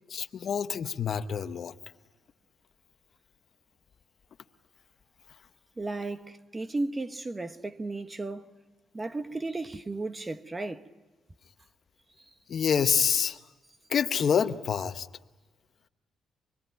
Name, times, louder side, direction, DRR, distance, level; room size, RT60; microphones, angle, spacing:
voice 1, 0.1-1.7 12.5-13.4 13.9-15.1, left 7 dB, 55° left, 0.9 m, -27 dB
voice 2, 5.8-8.5 8.9-10.8 12.2-12.3, right 2 dB, 20° right, 1.0 m, -34 dB
26.0 x 22.0 x 9.1 m
cardioid pair, 90°, 0 cm